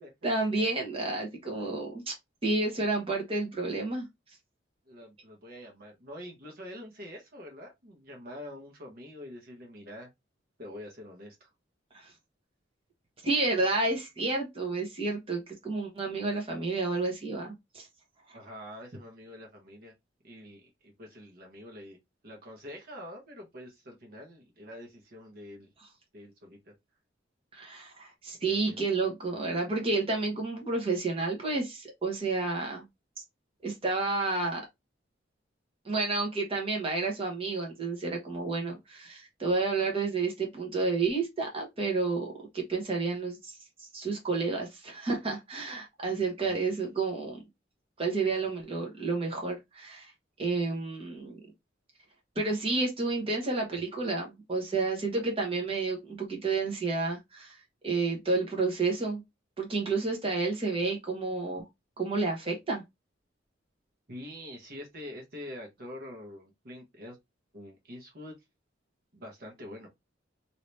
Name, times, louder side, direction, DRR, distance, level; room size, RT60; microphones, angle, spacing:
voice 1, 0.2-2.1 2.4-4.0 11.9-12.1 13.2-17.9 18.3-18.4 27.5-32.8 33.6-34.6 35.8-43.5 43.8-47.4 48.0-50.1 50.4-51.4 52.3-57.6 57.8-59.2 59.6-61.7 62.0-62.8, right 3 dB, 30° right, 1.1 m, -30 dB
voice 2, 4.9-10.1 10.6-11.5 18.3-19.9 20.2-22.0 22.2-25.7 26.1-26.7 28.4-28.8 46.4-46.9 64.1-67.2 67.5-68.4 69.1-69.9, left 1 dB, 55° right, 1.1 m, -45 dB
2.9 x 2.8 x 3.1 m
head